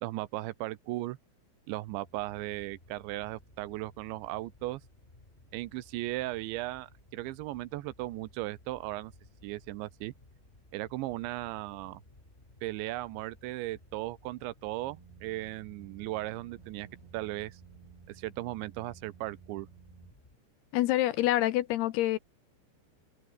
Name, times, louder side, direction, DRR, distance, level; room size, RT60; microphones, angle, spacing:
voice 1, 0.0-1.2 1.7-4.8 5.5-9.1 9.4-10.1 10.7-12.0 12.6-16.9 17.1-17.6 18.1-19.7, right 17 dB, 85° right, 3.2 m, -37 dB
sound 1, 1.9-20.4, left 2 dB, 10° left, 2.9 m, -59 dB
sound 2, 14.8-20.2, right 10 dB, 65° right, 4.1 m, -55 dB
voice 2, 20.7-22.2, left 15 dB, 75° left, 2.6 m, -26 dB
omnidirectional pair, 5.2 m